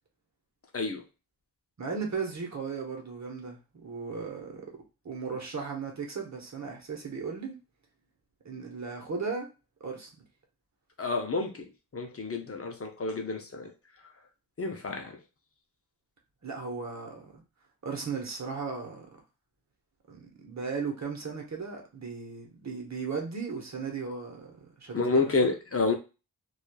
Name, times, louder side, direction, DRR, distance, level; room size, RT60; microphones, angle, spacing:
voice 1, 1.8-4.8 5.0-7.6 8.4-9.5 9.8-10.2 16.4-17.4 17.8-19.1 20.1-25.5, right 5 dB, 50° right, 0.9 m, -36 dB
voice 2, 11.0-11.7 11.9-13.7 14.6-15.2 24.9-25.9, left 3 dB, 40° left, 0.5 m, -29 dB
3.0 x 2.3 x 2.2 m
wide cardioid pair, 100°, 35 cm